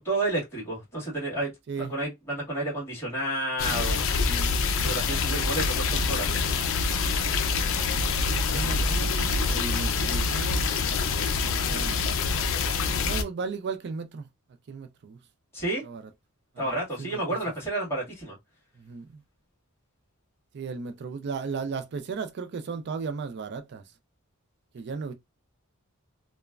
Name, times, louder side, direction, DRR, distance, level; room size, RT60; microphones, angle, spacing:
voice 1, 0.0-1.5 1.8-4.0 4.8-6.5 15.5-15.8 16.6-18.4, right 2 dB, 10° left, 1.7 m, -30 dB
sound 1, 3.6-13.2, left 4 dB, 65° left, 0.4 m, -26 dB
voice 2, 4.2-4.5 8.4-10.8 11.2-12.1 13.0-14.2 14.7-15.2 15.8-16.0 16.5-17.4 18.8-19.2 20.5-23.8 24.7-25.1, right 5 dB, 50° right, 0.4 m, -36 dB
3.0 x 2.1 x 2.3 m
head